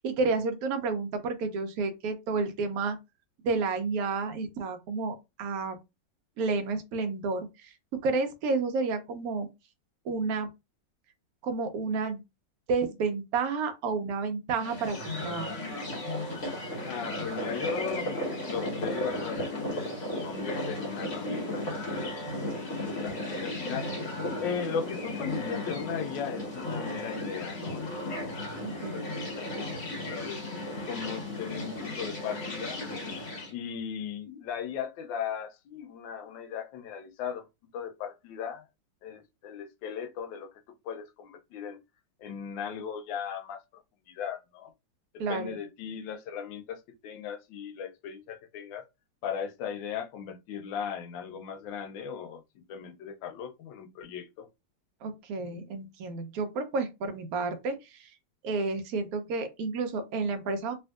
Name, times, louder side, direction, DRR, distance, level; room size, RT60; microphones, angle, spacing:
voice 1, 0.0-3.0 3.4-5.8 6.4-7.7 8.0-9.5 10.0-10.5 11.4-12.2 12.7-15.5 28.6-29.0 45.2-45.6 55.0-58.1 58.4-60.7, right 4 dB, 65° right, 1.0 m, -30 dB
sound 1, 14.5-33.5, left 1 dB, 45° left, 1.4 m, -35 dB
voice 2, 16.9-22.1 22.7-23.1 23.4-23.9 24.4-27.9 28.9-29.0 29.4-30.4 30.9-32.8 33.5-37.5 37.7-38.6 39.0-40.5 40.8-41.8 42.2-43.6 44.1-44.7 45.3-48.9 49.2-54.5, left 7 dB, 85° left, 1.3 m, -37 dB
3.4 x 2.5 x 2.3 m
omnidirectional pair, 2.0 m